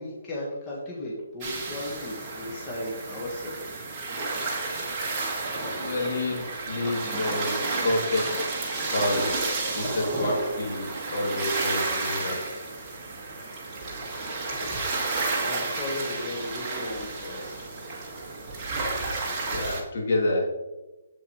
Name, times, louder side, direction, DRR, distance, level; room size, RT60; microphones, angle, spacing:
voice 1, 0.0-3.9 14.5-17.6, left 1 dB, 20° left, -4 dB, 1.5 m, -36 dB
Gentle small waves lapping on shore, 1.4-19.8, right 3 dB, 20° right, 1.8 m, -31 dB
voice 2, 5.8-8.5 8.9-9.4 9.8-12.4 19.5-20.4, left 2 dB, 60° left, 0 dB, 2.5 m, -28 dB
8.0 x 7.4 x 3.1 m, 1.1 s
hypercardioid pair, 165°, 0 cm